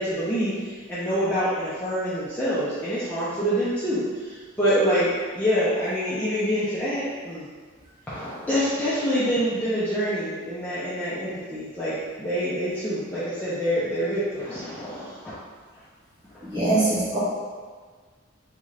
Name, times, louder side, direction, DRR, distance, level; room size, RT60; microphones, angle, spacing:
voice 1, 0.0-5.1 5.3-7.5 8.1-15.3, equal, 10° left, -12 dB, 0.5 m, -26 dB
voice 2, 16.4-17.2, right 2 dB, 20° right, -10 dB, 1.0 m, -22 dB
3.7 x 2.4 x 3.2 m, 1.5 s
head